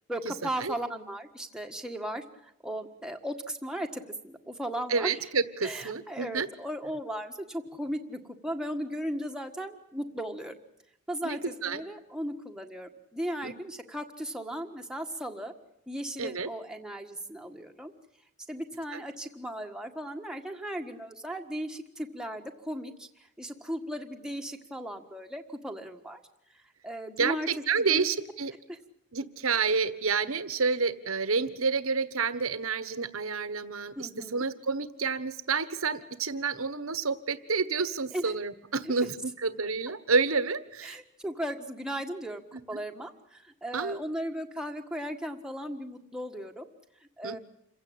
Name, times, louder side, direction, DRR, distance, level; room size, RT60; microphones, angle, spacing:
voice 1, 0.1-2.2 2.6-5.2 5.6-10.6 11.1-15.5 15.9-17.9 18.5-23.1 23.4-26.2 26.8-27.5 27.8-28.1 28.7-28.8 34.0-34.4 38.1-38.3 38.8-38.9 40.8-46.6 47.2-47.4, equal, 5° right, 3 dB, 1.6 m, -36 dB
voice 2, 4.9-6.5 11.2-11.8 13.4-13.5 16.2-16.5 18.9-19.0 27.2-28.5 29.1-41.0 42.5-42.6 43.7-44.0 47.2-47.4, right 4 dB, 70° right, 13 dB, 1.4 m, -29 dB
28.0 x 16.0 x 8.8 m, 0.81 s
head